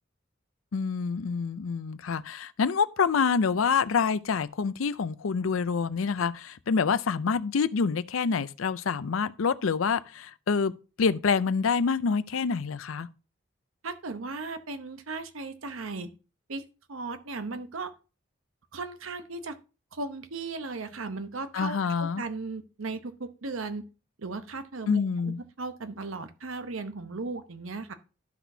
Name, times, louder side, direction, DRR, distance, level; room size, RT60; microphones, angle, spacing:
voice 1, 0.7-13.1 21.5-22.2 24.9-25.4, left 5 dB, 85° left, 0.5 m, -27 dB
voice 2, 13.8-16.1 16.5-16.6 16.9-17.9 18.7-19.5 19.9-23.9 24.2-27.9, right 3 dB, 90° right, 0.9 m, -36 dB
12.5 x 6.0 x 2.7 m
head